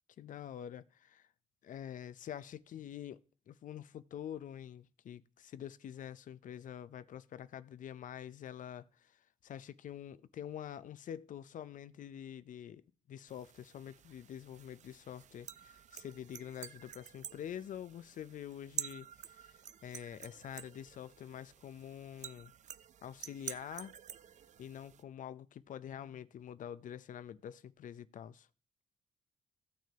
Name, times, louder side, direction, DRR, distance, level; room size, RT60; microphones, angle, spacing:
voice 1, 0.2-1.3 1.6-22.5 23.0-23.9 24.6-28.5, left 10 dB, 70° left, 0.6 m, -46 dB
sound 1, 13.3-25.0, right 9 dB, 60° right, 0.4 m, -49 dB
15.5 x 6.1 x 2.9 m
cardioid pair, 90°, 14 cm